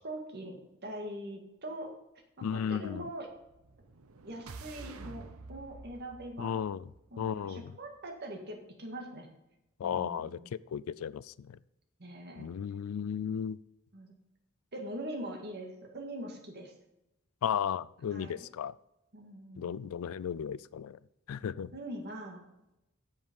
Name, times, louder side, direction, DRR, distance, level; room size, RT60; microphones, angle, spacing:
voice 1, 0.0-0.6 0.8-1.9 2.4-3.3 4.2-6.6 7.1-9.3 9.8-10.5 12.0-12.5 13.9-14.1 14.7-16.7 18.1-18.5 19.1-19.9 21.7-22.5, right 1 dB, 50° right, 3 dB, 1.9 m, -42 dB
voice 2, 2.4-3.0 6.4-6.9 7.2-7.7 9.8-11.5 12.4-13.6 17.4-18.8 19.6-21.0 21.3-21.7, left 8 dB, 80° left, 20 dB, 0.3 m, -35 dB
whoosh sci fi, 3.3-7.5, right 3 dB, 85° right, 0.7 m, -49 dB
8.2 x 7.2 x 5.2 m, 0.89 s
head